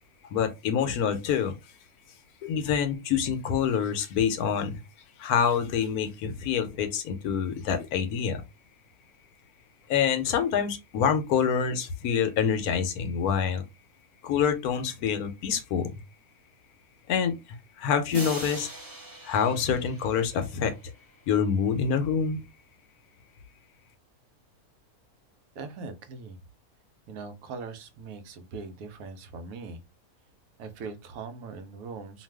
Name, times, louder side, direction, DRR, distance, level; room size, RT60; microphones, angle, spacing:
voice 1, 0.3-1.5 2.4-4.8 5.2-8.4 9.9-13.6 14.2-16.0 17.1-18.7 19.2-20.7 21.3-22.4, left 7 dB, 80° left, 1.1 m, -26 dB
sound 1, 18.1-20.9, right 2 dB, 20° right, 0.6 m, -40 dB
voice 2, 25.6-26.4 27.1-29.8 30.6-32.2, right 4 dB, 75° right, 1.0 m, -40 dB
2.6 x 2.4 x 3.3 m
omnidirectional pair, 1.6 m